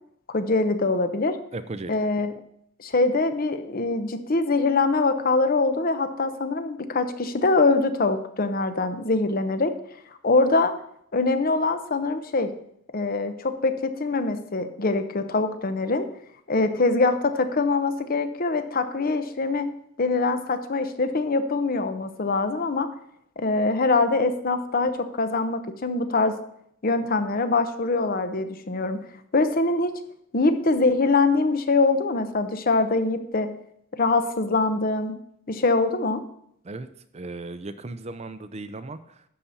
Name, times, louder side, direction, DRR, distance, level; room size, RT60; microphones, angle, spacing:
voice 1, 0.3-1.4 1.9-2.3 2.8-9.7 10.2-10.7 11.1-12.5 12.9-16.1 16.5-19.7 20.0-22.9 23.4-26.4 26.8-29.0 29.3-29.9 30.3-33.5 34.0-35.2 35.5-36.2, left 3 dB, 45° left, 9 dB, 0.8 m, -23 dB
voice 2, 1.5-2.0 36.6-36.9 37.1-39.2, right 2 dB, 30° right, 12 dB, 0.5 m, -36 dB
11.5 x 4.2 x 7.1 m, 0.71 s
head